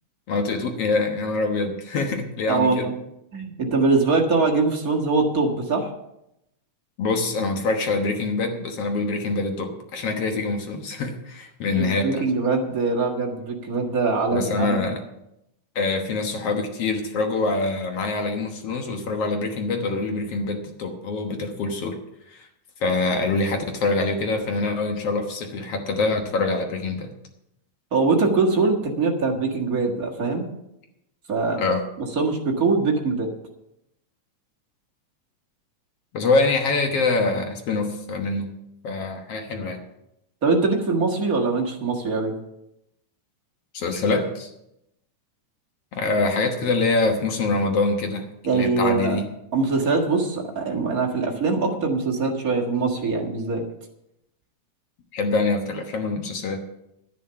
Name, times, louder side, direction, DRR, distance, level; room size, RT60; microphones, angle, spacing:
voice 1, 0.3-2.9 7.0-12.2 14.3-15.0 15.8-22.0 22.3-22.4 22.8-27.1 31.6-31.8 36.1-38.5 38.8-39.8 43.7-44.5 45.9-48.2 48.5-49.2 55.1-56.6, left 3 dB, 60° left, 4 dB, 2.0 m, -25 dB
voice 2, 2.5-2.9 3.3-5.9 11.7-14.8 27.9-30.4 31.3-31.6 32.1-33.3 40.4-42.3 48.4-49.2 49.5-53.6, right 3 dB, 35° right, 0 dB, 1.7 m, -22 dB
11.5 x 10.5 x 5.7 m, 0.84 s
omnidirectional pair, 3.6 m